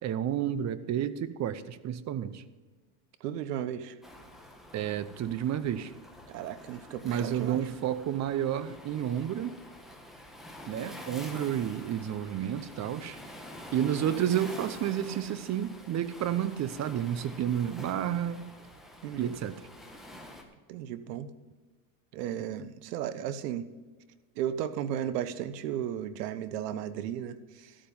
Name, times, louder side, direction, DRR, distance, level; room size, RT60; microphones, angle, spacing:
voice 1, 0.0-2.4 4.7-5.9 7.0-9.5 10.7-13.2 13.7-18.4 19.2-19.6, right 10 dB, 35° right, 15 dB, 0.8 m, -31 dB
voice 2, 3.2-4.0 6.3-7.6 19.0-19.4 20.7-21.3 22.1-23.7 24.4-27.8, right 10 dB, 80° right, 13 dB, 1.2 m, -35 dB
Waves surf, 4.0-20.4, left 1 dB, ahead, 1.8 m, -47 dB
13.0 x 8.8 x 5.4 m, 1.3 s
supercardioid pair, 115°, 47 cm